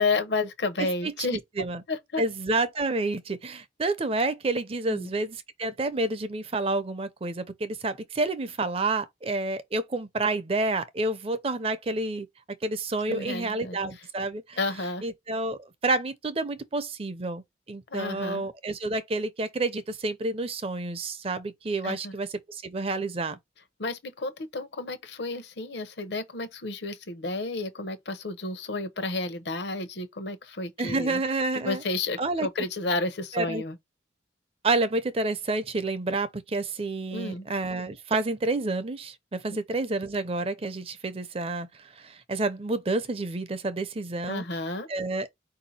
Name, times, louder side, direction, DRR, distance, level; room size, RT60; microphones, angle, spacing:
voice 1, 0.0-1.4 1.9-2.2 4.9-5.1 13.1-13.8 14.6-15.0 17.9-18.5 21.8-22.1 23.8-31.2 31.5-33.8 37.1-37.5 44.2-44.9, left 3 dB, 65° left, 0.8 m, -31 dB
voice 2, 0.8-1.8 2.2-12.3 12.6-17.4 17.7-23.4 30.8-31.9 32.2-32.7 33.3-33.6 34.6-45.3, right 2 dB, 30° right, 0.5 m, -29 dB
4.6 x 2.7 x 4.1 m
head